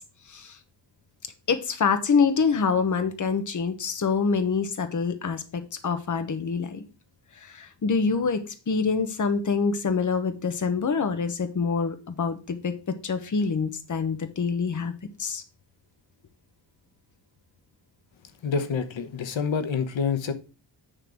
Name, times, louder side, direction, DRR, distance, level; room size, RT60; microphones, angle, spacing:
voice 1, 1.5-6.8 7.4-8.4 8.7-12.7 13.0-14.9 15.2-15.4, left 5 dB, 40° left, 8 dB, 1.1 m, -26 dB
voice 2, 18.4-20.3, left 6 dB, 85° left, 9 dB, 1.1 m, -27 dB
10.0 x 3.9 x 6.2 m, 0.34 s
wide cardioid pair, 170°, 45 cm